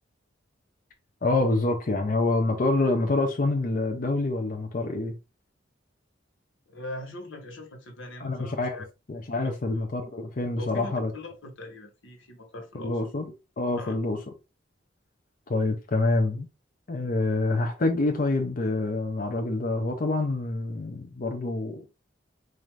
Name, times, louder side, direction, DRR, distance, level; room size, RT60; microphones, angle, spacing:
voice 1, 1.2-5.2 8.2-11.1 12.7-13.2 13.6-14.2 15.5-16.5 16.9-21.9, left 2 dB, 45° left, 0.6 m, -26 dB
voice 2, 6.7-8.8 9.4-9.8 10.6-13.0 13.7-14.0, left 1 dB, 85° left, 1.2 m, -41 dB
4.2 x 2.5 x 3.2 m
head